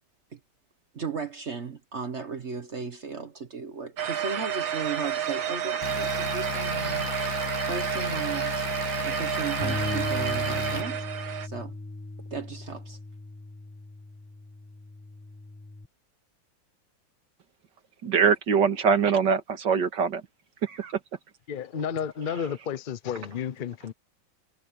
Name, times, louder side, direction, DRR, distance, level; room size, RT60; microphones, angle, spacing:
voice 1, 0.9-7.1 7.6-8.6 9.0-11.0 11.4-11.7 12.3-13.0, right 5 dB, 40° right, 1.3 m, -35 dB
sound 1, 4.0-11.5, right 9 dB, 85° right, 2.3 m, -30 dB
sound 2, 5.8-10.8, left 12 dB, 70° left, 1.3 m, -35 dB
Bass guitar, 9.6-15.9, left 2 dB, 5° left, 1.2 m, -37 dB
voice 2, 18.0-20.2 20.6-21.0, right 6 dB, 70° right, 2.4 m, -23 dB
voice 3, 21.5-23.9, left 7 dB, 50° left, 0.5 m, -32 dB
omnidirectional pair, 2.0 m